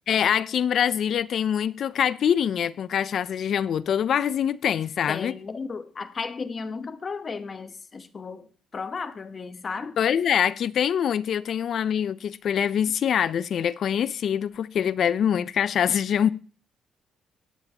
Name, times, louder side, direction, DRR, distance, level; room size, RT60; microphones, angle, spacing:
voice 1, 0.1-5.3 10.0-16.3, left 8 dB, 55° left, 0.6 m, -24 dB
voice 2, 5.1-10.0, left 4 dB, 30° left, 1.0 m, -34 dB
21.5 x 8.5 x 2.9 m
cardioid pair, 140°, 0 cm